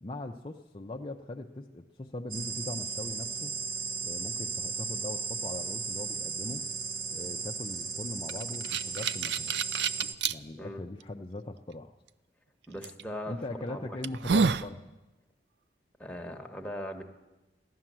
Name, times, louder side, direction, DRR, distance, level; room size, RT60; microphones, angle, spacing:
voice 1, 0.0-3.6 4.0-6.7 7.1-9.6 10.3-11.9 13.3-14.9, left 2 dB, 30° left, 3 dB, 0.5 m, -40 dB
sound 1, 2.3-10.1, right 5 dB, 50° right, 1.0 m, -36 dB
sound 2, 8.3-10.3 11.0-11.1 12.8-13.0 13.6-13.7 14.0-14.7, right 5 dB, 65° right, 0.4 m, -28 dB
voice 2, 12.7-13.4 13.7-14.0 16.0-17.0, left 1 dB, 5° left, 2 dB, 1.2 m, -39 dB
16.0 x 11.5 x 7.5 m, 1.1 s
head